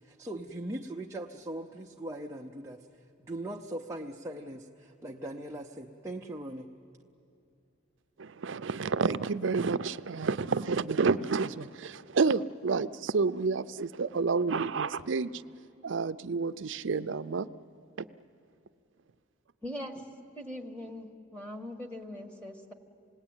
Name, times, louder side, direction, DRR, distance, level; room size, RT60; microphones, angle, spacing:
voice 1, 0.0-2.9 3.2-6.7, right 1 dB, 15° right, 0 dB, 0.7 m, -40 dB
voice 2, 8.2-15.4 15.8-17.5, right 4 dB, 65° right, 12 dB, 0.5 m, -29 dB
voice 3, 19.6-20.0 20.3-22.7, left 1 dB, 5° left, 4 dB, 1.6 m, -41 dB
27.5 x 20.0 x 8.9 m, 2.6 s
head